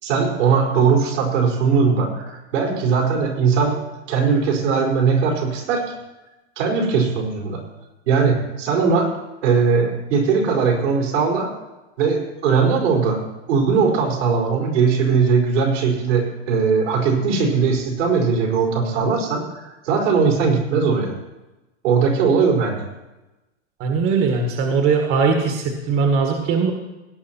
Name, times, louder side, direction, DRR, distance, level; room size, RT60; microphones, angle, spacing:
voice 1, 0.0-3.8 4.1-5.8 6.6-7.6 8.1-9.1 9.4-11.5 12.0-13.2 13.5-21.1 21.8-22.8, right 5 dB, 85° right, -1 dB, 4.7 m, -19 dB
voice 2, 23.8-26.7, right 5 dB, 40° right, 3 dB, 1.7 m, -20 dB
17.5 x 9.3 x 4.4 m, 1.0 s
supercardioid pair, 150°, 35 cm